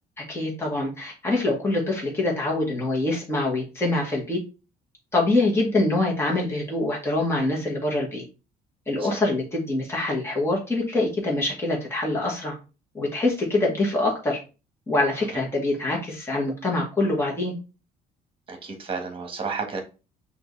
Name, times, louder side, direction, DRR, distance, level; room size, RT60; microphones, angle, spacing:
voice 1, 0.2-4.4 5.1-8.2 8.9-12.6 12.9-14.4 14.9-17.5, left 2 dB, 15° left, -3 dB, 1.6 m, -25 dB
voice 2, 18.5-19.8, right 4 dB, 30° right, 3 dB, 1.5 m, -32 dB
5.9 x 2.7 x 3.2 m, 0.31 s
cardioid pair, 110°, 17 cm